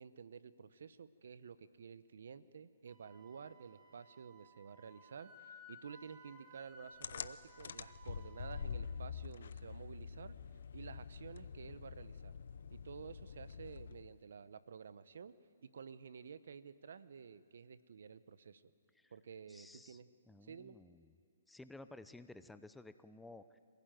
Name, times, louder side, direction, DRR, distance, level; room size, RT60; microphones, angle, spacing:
voice 1, 0.0-10.4 10.7-12.3 12.7-15.3 15.6-18.6 19.1-20.1 20.4-20.8, right 6 dB, 70° right, 14 dB, 1.0 m, -52 dB
Wind instrument woodwind instrument, 2.9-8.7, left 1 dB, 20° right, 3.1 m, -59 dB
sound 1, 7.0-14.2, left 6 dB, 65° left, 0.8 m, -46 dB
voice 2, 19.5-21.1 21.5-23.6, left 2 dB, 5° left, 12 dB, 0.6 m, -55 dB
26.0 x 16.0 x 9.3 m, 2.3 s
hypercardioid pair, 145°, 0 cm